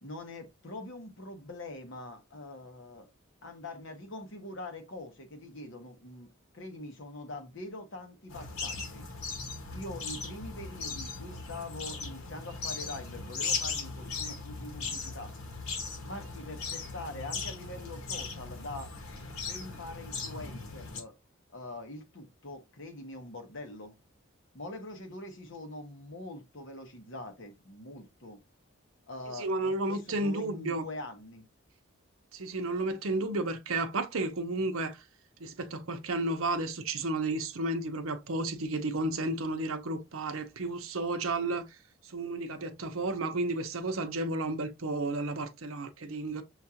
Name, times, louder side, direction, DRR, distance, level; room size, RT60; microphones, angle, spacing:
voice 1, 0.0-3.1 3.4-9.1 9.7-15.3 16.0-18.9 19.5-21.2 21.5-23.9 24.5-28.4 29.1-31.5, left 2 dB, 65° left, 1.0 m, -43 dB
sound 1, 8.3-21.0, left 4 dB, 85° left, 1.1 m, -38 dB
voice 2, 29.3-30.8 32.3-35.0 35.4-41.7 42.0-46.4, right 2 dB, 80° right, 0.7 m, -32 dB
6.4 x 2.4 x 2.8 m
head